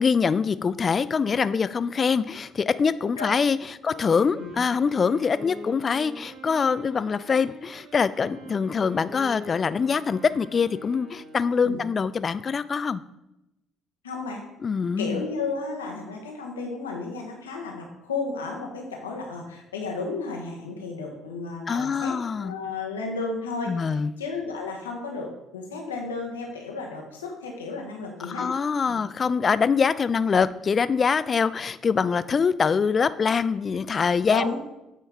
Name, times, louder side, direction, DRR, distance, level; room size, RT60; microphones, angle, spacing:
voice 1, 0.0-3.6 3.8-13.0 14.6-15.2 21.7-22.6 23.7-24.1 28.3-34.5, left 5 dB, 40° left, 16 dB, 0.3 m, -24 dB
Wind instrument woodwind instrument, 3.8-11.6, right 1 dB, 55° right, 1.4 m, -44 dB
voice 2, 14.0-14.4 15.0-28.5 28.9-29.0 34.3-34.5, left 3 dB, 90° left, 1 dB, 1.1 m, -33 dB
8.2 x 4.5 x 3.5 m, 0.90 s
hypercardioid pair, 50°, 0 cm